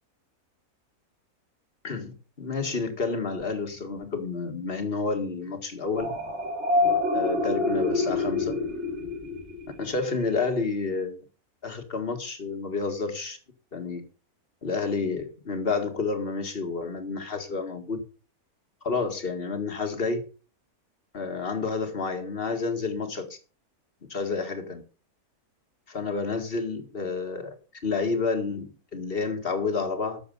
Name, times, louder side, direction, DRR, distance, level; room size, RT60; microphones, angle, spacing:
voice 1, 1.8-6.1 7.1-8.6 9.8-11.2 11.6-13.4 13.7-14.0 14.6-18.0 18.8-20.2 21.1-23.3 24.1-24.8 25.9-27.6 27.8-30.2, left 4 dB, 40° left, 1.9 m, -30 dB
sound 1, 6.0-9.7, left 2 dB, 50° right, 2.8 m, -26 dB
12.5 x 7.0 x 5.3 m
omnidirectional pair, 1.5 m